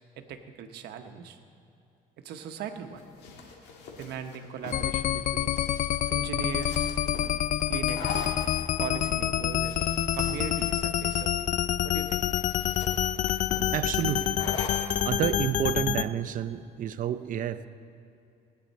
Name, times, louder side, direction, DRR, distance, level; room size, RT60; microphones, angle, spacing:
voice 1, 0.2-1.4 2.2-3.0 4.0-5.6 6.1-7.0 7.7-8.4 8.8-9.9 10.1-11.3 11.8-12.2, right 7 dB, 75° right, 7 dB, 1.0 m, -39 dB
sound 1, 2.7-15.0, left 3 dB, 85° left, 1.8 m, -43 dB
sound 2, 4.7-16.0, left 11 dB, 50° left, 0.4 m, -27 dB
voice 2, 13.7-14.4 15.0-17.7, right 10 dB, 50° right, 12 dB, 0.6 m, -29 dB
18.0 x 9.3 x 4.2 m, 2.6 s
cardioid pair, 110°, 17 cm